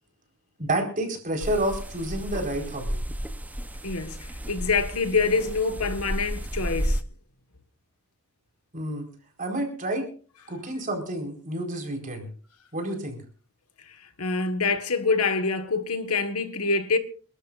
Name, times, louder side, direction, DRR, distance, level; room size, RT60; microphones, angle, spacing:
voice 1, 0.6-3.0 8.7-9.1 9.4-10.1 10.5-12.3 12.7-13.2, right 1 dB, 40° right, 4.5 m, -29 dB
sound 1, 1.4-7.0, equal, 5° right, 0.8 m, -32 dB
voice 2, 3.8-7.0 13.9-17.0, left 4 dB, 85° left, 1.6 m, -26 dB
28.5 x 12.5 x 2.5 m
head